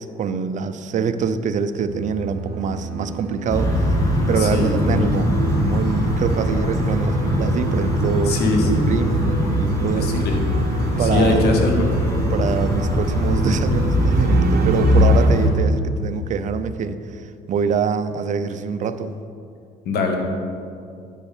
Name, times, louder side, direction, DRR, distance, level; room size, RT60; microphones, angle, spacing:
voice 1, 0.0-8.4 8.9-9.2 9.6-10.3 11.0-11.6 12.3-19.1, right 6 dB, 45° right, 10 dB, 0.6 m, -25 dB
sound 1, 1.8-15.3, right 5 dB, 65° right, 1.0 m, -31 dB
sound 2, 3.5-15.5, equal, 20° left, 2.1 m, -20 dB
voice 2, 4.4-5.0 8.3-8.9 10.0-10.4 11.0-11.9 19.8-20.2, left 2 dB, 70° left, 2 dB, 1.6 m, -21 dB
9.3 x 5.5 x 6.6 m, 2.4 s
cardioid pair, 110°, 17 cm